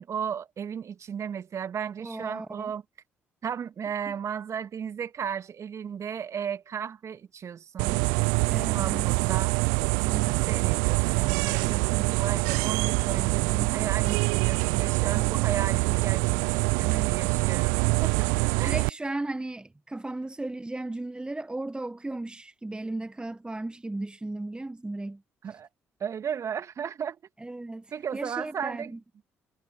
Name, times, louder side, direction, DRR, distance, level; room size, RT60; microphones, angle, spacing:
voice 1, 0.0-2.8 3.4-8.0 8.7-9.6 10.0-18.3 18.6-18.8 25.4-25.7 26.0-27.2 27.9-28.9, right 8 dB, 50° right, 2.7 m, -35 dB
voice 2, 2.0-2.7 4.1-4.2 8.5-9.2 18.6-25.2 25.5-25.6 27.4-29.0, right 2 dB, 15° right, 1.3 m, -35 dB
sound 1, 7.8-18.9, right 32 dB, 70° right, 0.5 m, -25 dB
figure-of-eight pair, 45°, 7 cm